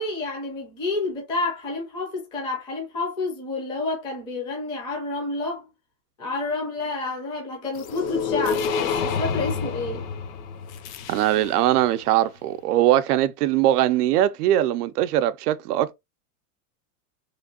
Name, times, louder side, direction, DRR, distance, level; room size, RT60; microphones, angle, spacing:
voice 1, 0.0-5.6 6.2-10.0, left 3 dB, 10° left, 0.4 m, -29 dB
sound 1, 7.8-11.8, left 6 dB, 65° left, 0.6 m, -28 dB
voice 2, 11.1-15.9, right 13 dB, 90° right, 0.6 m, -21 dB
3.1 x 2.5 x 2.8 m
supercardioid pair, 160°, 45 cm